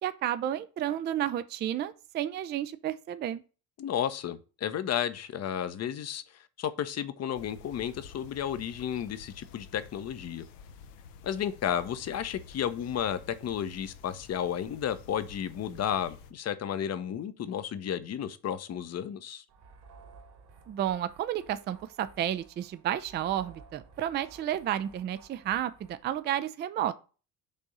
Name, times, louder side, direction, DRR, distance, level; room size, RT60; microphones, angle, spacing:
voice 1, 0.0-3.4 20.7-26.9, right 11 dB, 25° right, 0.4 m, -31 dB
voice 2, 3.8-10.4 11.2-19.4, left 9 dB, 35° left, 0.7 m, -33 dB
sound 1, 7.3-16.3, left 6 dB, 70° left, 0.8 m, -50 dB
sound 2, 19.5-26.4, right 4 dB, 55° right, 1.7 m, -55 dB
5.5 x 3.6 x 5.3 m
figure-of-eight pair, 60°, 48 cm